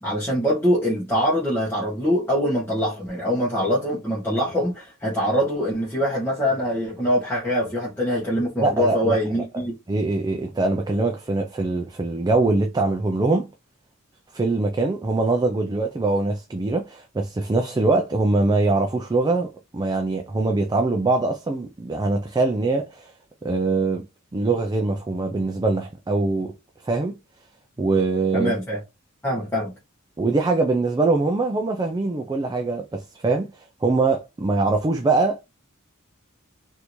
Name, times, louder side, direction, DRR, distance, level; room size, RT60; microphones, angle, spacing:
voice 1, 0.0-9.7 28.3-28.8 29.2-29.7, equal, 10° left, 1.1 m, -23 dB
voice 2, 8.6-9.4 9.9-13.5 14.3-23.1 23.4-24.0 24.3-26.5 26.8-27.1 27.8-28.5 30.2-35.4, right 3 dB, 20° right, 0.3 m, -23 dB
3.3 x 2.6 x 3.0 m
head